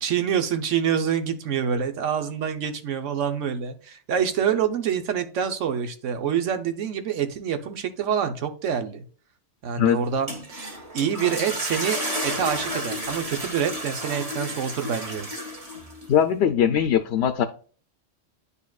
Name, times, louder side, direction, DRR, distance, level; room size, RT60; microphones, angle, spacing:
voice 1, 0.0-9.0 9.6-15.3, right 8 dB, 90° right, 8 dB, 1.2 m, -26 dB
sound 1, 10.0-16.1, equal, 30° right, 1.4 m, -32 dB
voice 2, 16.1-17.4, left 9 dB, 65° left, 9 dB, 0.8 m, -20 dB
10.0 x 4.2 x 2.3 m, 0.40 s
omnidirectional pair, 1.2 m